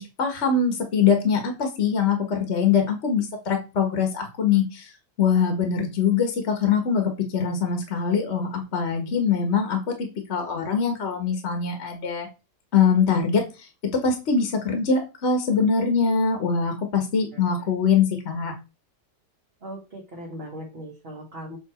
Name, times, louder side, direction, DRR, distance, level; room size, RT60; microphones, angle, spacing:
voice 1, 0.0-4.9 5.2-9.8 10.3-12.3 12.7-13.4 13.9-18.5, left 6 dB, 45° left, 4 dB, 1.5 m, -23 dB
voice 2, 19.6-21.6, equal, 35° right, -2 dB, 1.6 m, -38 dB
7.7 x 3.2 x 4.3 m, 0.28 s
omnidirectional pair, 1.8 m